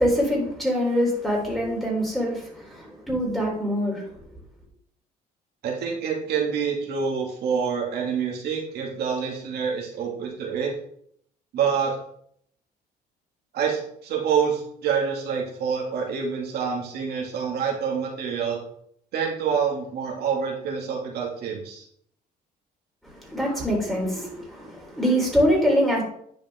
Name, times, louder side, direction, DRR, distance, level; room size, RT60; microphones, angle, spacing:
voice 1, 0.0-4.1 23.0-26.0, equal, ahead, -2 dB, 3.5 m, -24 dB
voice 2, 5.6-10.7 11.5-11.9 13.5-18.6 19.1-21.8, right 6 dB, 70° right, -1 dB, 2.1 m, -27 dB
10.5 x 5.1 x 3.6 m, 0.67 s
cardioid pair, 110°, 17 cm